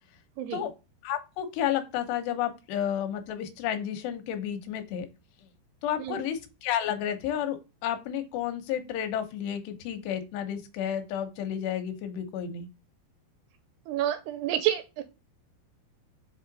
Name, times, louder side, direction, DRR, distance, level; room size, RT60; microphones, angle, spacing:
voice 1, 0.4-0.7 6.0-6.3 13.9-15.0, right 12 dB, 85° right, 10 dB, 2.3 m, -29 dB
voice 2, 1.0-5.1 5.8-12.7, left 10 dB, 80° left, 7 dB, 2.8 m, -31 dB
7.1 x 3.7 x 3.8 m, 0.29 s
omnidirectional pair, 5.0 m